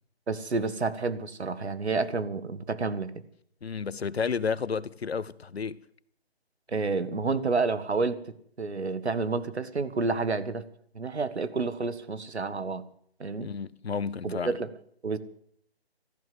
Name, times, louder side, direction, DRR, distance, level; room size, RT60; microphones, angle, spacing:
voice 1, 0.3-3.1 6.7-10.7 10.9-12.8 13.2-13.5 14.2-14.7 15.0-15.2, right 4 dB, 90° right, 1.6 m, -29 dB
voice 2, 3.6-5.8 13.4-14.5, left 5 dB, 75° left, 0.9 m, -31 dB
14.0 x 12.5 x 7.8 m
figure-of-eight pair, 170°, 32 cm